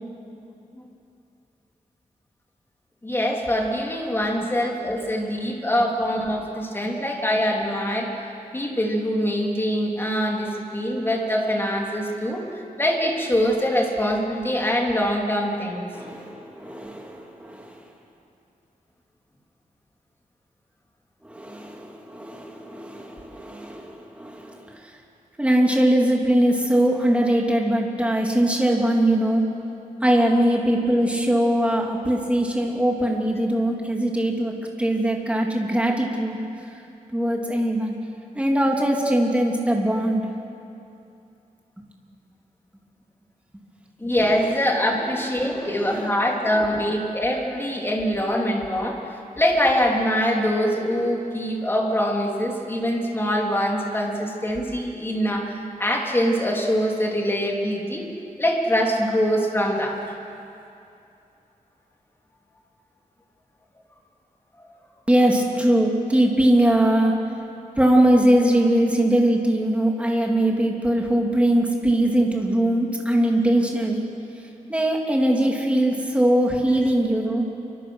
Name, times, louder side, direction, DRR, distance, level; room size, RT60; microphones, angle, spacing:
voice 1, 3.0-8.1 8.5-12.4 12.8-15.8 44.0-58.1 58.4-60.1, equal, 15° left, 0 dB, 3.3 m, -24 dB
voice 2, 15.9-17.8 21.2-24.9 25.4-29.4 30.0-36.4 37.1-38.0 38.3-40.3 45.0-45.1 45.4-46.1 46.4-46.8 65.1-67.2 67.8-74.0 74.7-77.5, right 1 dB, 10° right, 0 dB, 3.1 m, -21 dB
28.0 x 24.5 x 6.5 m, 2.6 s
wide cardioid pair, 155°, 14 cm